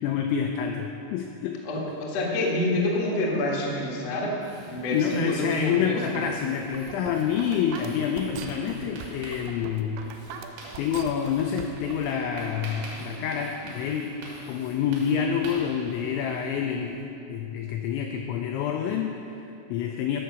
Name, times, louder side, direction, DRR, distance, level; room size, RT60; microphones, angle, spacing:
voice 1, 0.0-1.6 4.9-10.3 10.8-14.2 14.5-17.0 17.3-20.2, left 7 dB, 85° left, 3 dB, 2.6 m, -28 dB
voice 2, 1.6-4.3 4.7-6.2, left 1 dB, 70° left, -3 dB, 1.6 m, -27 dB
sound 1, 4.4-17.0, right 1 dB, 60° right, 3.4 m, -46 dB
sound 2, 6.6-12.1, right 6 dB, 90° right, 2.6 m, -41 dB
14.5 x 5.7 x 6.8 m, 2.7 s
omnidirectional pair, 5.9 m